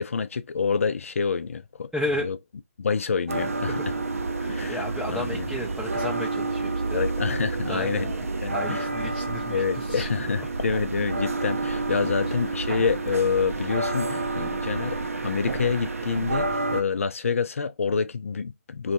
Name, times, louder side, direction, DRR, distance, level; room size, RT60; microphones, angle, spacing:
voice 1, 0.0-1.9 2.2-2.4 2.8-3.9 4.5-5.5 6.9-8.8 9.5-18.9, left 5 dB, 75° left, 0.5 m, -27 dB
voice 2, 1.9-2.3 3.7-3.8 4.4-7.0 7.7-8.1 8.5-10.1 12.2-12.3, left 1 dB, ahead, 0.4 m, -33 dB
sound 1, 3.3-16.8, right 3 dB, 90° right, 0.6 m, -29 dB
3.1 x 2.3 x 4.2 m
hypercardioid pair, 155°, 7 cm